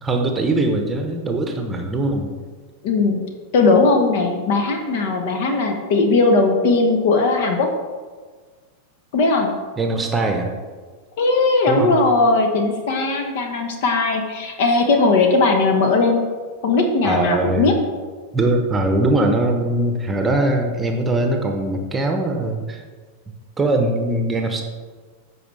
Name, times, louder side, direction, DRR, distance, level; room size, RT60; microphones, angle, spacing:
voice 1, 0.0-2.3 9.8-10.5 11.7-11.9 17.0-17.7 18.3-22.8 23.6-24.6, right 2 dB, 15° right, 4 dB, 1.0 m, -21 dB
voice 2, 2.8-3.2 3.5-7.7 9.1-9.7 11.2-16.2 16.6-17.7, left 3 dB, 50° left, 4 dB, 1.1 m, -18 dB
14.0 x 4.8 x 3.4 m, 1.5 s
figure-of-eight pair, 90°, 0 cm